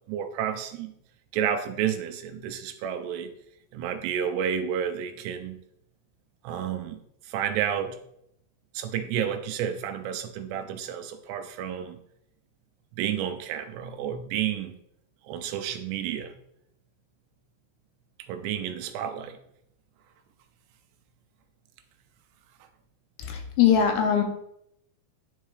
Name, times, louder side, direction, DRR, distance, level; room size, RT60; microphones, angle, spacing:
voice 1, 0.1-0.9 1.3-3.3 3.7-5.6 6.4-7.0 7.2-8.0 8.7-12.0 13.0-14.8 15.2-16.3 18.2-19.4, right 9 dB, 85° right, 8 dB, 2.6 m, -30 dB
voice 2, 23.2-24.2, left 8 dB, 80° left, 4 dB, 2.9 m, -21 dB
10.5 x 4.6 x 3.2 m, 0.76 s
omnidirectional pair, 5.1 m